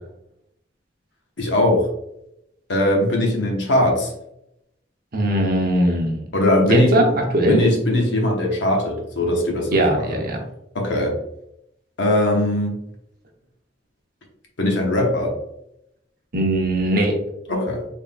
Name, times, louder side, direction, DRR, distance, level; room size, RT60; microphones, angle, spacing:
voice 1, 1.4-1.9 2.7-4.1 6.3-6.9 7.5-10.2 10.7-11.1 12.0-12.8 14.6-15.3 17.5-17.8, left 1 dB, 75° left, 0 dB, 0.9 m, -20 dB
voice 2, 5.1-6.2 6.6-7.6 9.7-10.4 16.3-17.2, right 1 dB, 55° right, 2 dB, 0.8 m, -19 dB
3.7 x 3.6 x 2.2 m, 0.80 s
head